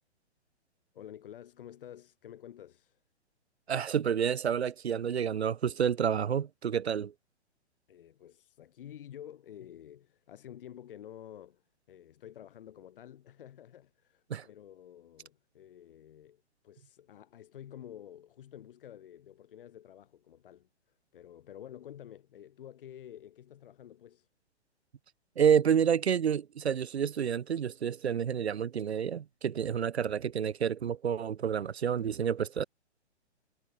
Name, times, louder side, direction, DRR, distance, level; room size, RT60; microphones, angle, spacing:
voice 1, 0.9-3.0 7.9-20.7 21.1-24.3 29.6-29.9, left 10 dB, 50° left, 5.9 m, -50 dB
voice 2, 3.7-7.1 14.3-14.5 25.4-32.6, right 8 dB, 65° right, 0.8 m, -29 dB
figure-of-eight pair, 120°, 34 cm